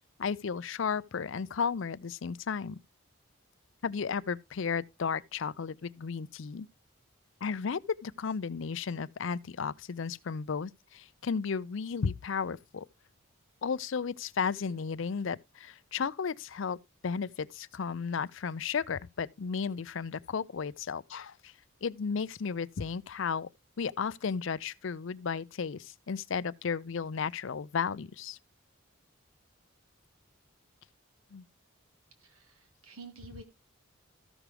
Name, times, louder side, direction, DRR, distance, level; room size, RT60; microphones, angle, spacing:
voice 1, 0.2-2.8 3.8-6.7 7.4-12.9 13.6-21.5 21.8-23.5 23.8-28.4 31.3-31.4, left 6 dB, 65° left, 0.5 m, -34 dB
voice 2, 32.2-33.4, right 3 dB, 85° right, 1.6 m, -49 dB
14.0 x 6.1 x 3.3 m
head